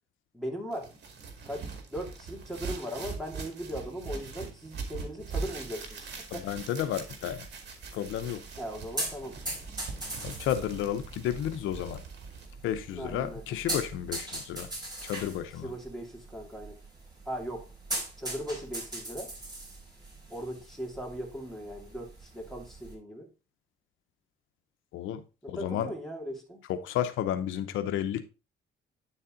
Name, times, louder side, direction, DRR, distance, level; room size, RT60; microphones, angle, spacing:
voice 1, 0.3-0.9 1.4-6.1 6.3-6.4 8.6-9.4 12.9-13.4 15.6-16.8 17.3-17.7 18.2-19.3 20.3-23.3 25.5-26.6, equal, ahead, 0 dB, 2.6 m, -38 dB
sound 1, 0.7-12.5, right 4 dB, 60° right, 2.1 m, -41 dB
sound 2, 5.5-22.9, right 2 dB, 20° right, 4.1 m, -41 dB
voice 2, 6.3-7.4 7.9-8.4 10.2-12.0 12.6-14.7 15.0-15.7 24.9-25.2 25.5-25.9 26.7-28.2, left 10 dB, 90° left, 9 dB, 0.8 m, -32 dB
9.6 x 4.2 x 3.8 m, 0.30 s
cardioid pair, 90°, 20 cm